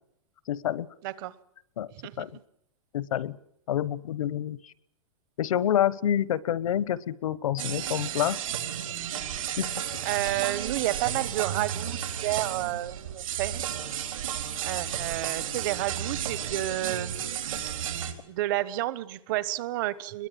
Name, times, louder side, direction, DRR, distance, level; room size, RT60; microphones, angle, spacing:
voice 1, 0.5-0.9 1.8-1.9 2.2-2.4 2.9-3.4 3.7-4.7 5.4-8.4 9.6-9.7, left 10 dB, 80° left, 19 dB, 1.1 m, -27 dB
voice 2, 1.0-1.3 1.9-2.3 10.0-13.7 14.3-17.3 17.9-20.3, right 16 dB, 40° right, 17 dB, 1.0 m, -31 dB
sound 1, 7.6-18.1, right 10 dB, 75° right, 4.3 m, -33 dB
22.5 x 22.0 x 8.9 m, 0.75 s
supercardioid pair, 165°, 17 cm